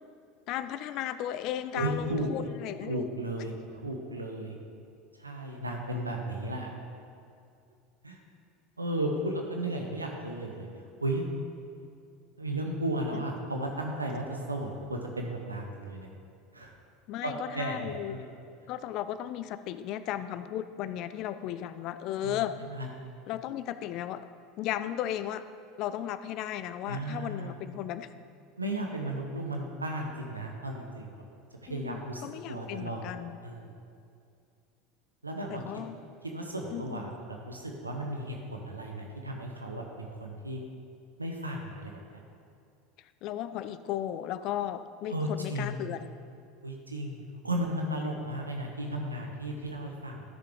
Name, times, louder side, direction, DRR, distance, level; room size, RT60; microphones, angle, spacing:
voice 1, 0.5-3.0 13.1-13.2 17.1-18.2 18.7-22.5 23.3-24.2 24.6-25.4 25.8-28.1 31.7-33.4 35.5-36.0 36.7-37.1 43.2-46.2, left 11 dB, 50° left, 13 dB, 0.4 m, -35 dB
voice 2, 1.7-2.4 2.9-4.5 5.2-6.7 8.0-8.2 8.8-10.7 11.0-11.2 12.4-16.1 16.5-16.7 17.2-18.3 22.2-22.9 26.9-27.5 28.6-31.1 31.6-33.1 33.4-33.8 35.2-35.8 36.2-40.6 41.2-41.9 45.1-45.8 46.6-50.2, right 1 dB, 85° right, 1 dB, 0.9 m, -34 dB
13.0 x 6.7 x 3.7 m, 2.4 s
figure-of-eight pair, 75°, 0 cm